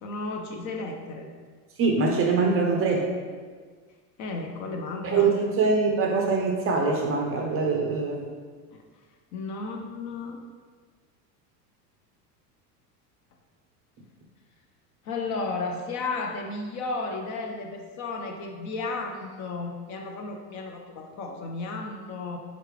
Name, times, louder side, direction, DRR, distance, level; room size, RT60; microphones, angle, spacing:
voice 1, 0.0-1.3 4.2-5.3 8.7-8.8 9.3-10.4 15.0-22.4, left 3 dB, 35° left, 2 dB, 0.5 m, -33 dB
voice 2, 1.8-3.1 5.0-8.3, right 4 dB, 30° right, 1 dB, 0.5 m, -23 dB
3.7 x 3.3 x 3.2 m, 1.5 s
hypercardioid pair, 90°, 49 cm